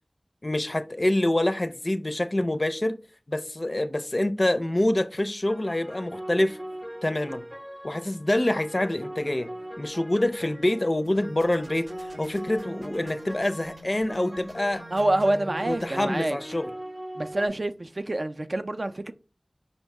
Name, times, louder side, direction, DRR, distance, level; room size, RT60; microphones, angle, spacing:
voice 1, 0.4-3.0 3.3-6.6 7.0-7.4 7.8-9.5 9.8-14.8 15.7-16.7, left 1 dB, 45° left, 0.4 m, -26 dB
sound 1, 5.5-17.5, equal, 10° right, 0.6 m, -40 dB
sound 2, 11.0-16.0, right 1 dB, 80° right, 0.8 m, -44 dB
voice 2, 14.9-16.4 17.2-19.1, right 1 dB, 60° right, 0.4 m, -27 dB
5.2 x 2.1 x 4.6 m
wide cardioid pair, 50°, 0 cm